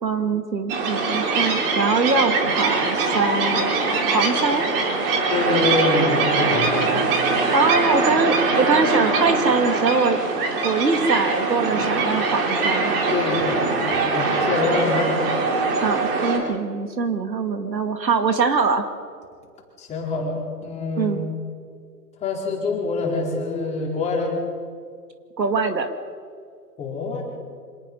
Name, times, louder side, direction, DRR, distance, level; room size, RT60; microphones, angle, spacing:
voice 1, 0.0-3.7 4.1-4.7 7.5-10.2 10.6-12.9 15.8-18.8 21.0-21.2 25.4-25.9, right 4 dB, 85° right, 7 dB, 2.4 m, -22 dB
sound 1, 0.7-16.4, right 3 dB, 35° right, 3.8 m, -22 dB
voice 2, 5.3-7.1 13.1-15.2 19.8-21.2 22.2-24.4 26.8-27.2, left 3 dB, 15° left, -2 dB, 4.4 m, -25 dB
26.0 x 19.0 x 5.6 m, 2.2 s
hypercardioid pair, 140°, 49 cm